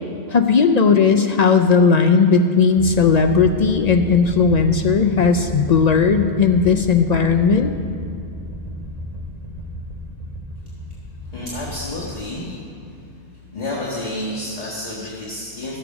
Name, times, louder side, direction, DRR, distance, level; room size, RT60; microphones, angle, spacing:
voice 1, 0.3-7.7, left 5 dB, 55° left, 6 dB, 0.4 m, -16 dB
sound 1, 2.8-12.9, left 1 dB, 35° right, 1.5 m, -33 dB
voice 2, 11.2-12.5 13.5-15.8, left 1 dB, 35° left, -6 dB, 1.5 m, -29 dB
13.5 x 7.2 x 5.9 m, 2.5 s
omnidirectional pair, 1.2 m